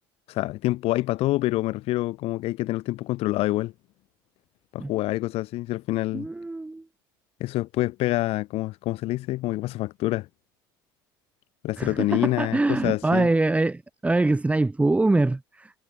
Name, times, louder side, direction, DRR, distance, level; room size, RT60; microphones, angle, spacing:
voice 1, 0.3-3.7 4.7-6.3 7.4-10.3 11.6-13.3, left 17 dB, 60° left, 2.3 m, -26 dB
voice 2, 6.1-6.8 11.8-15.7, right 2 dB, 10° right, 2.1 m, -24 dB
hypercardioid pair, 80°, 11 cm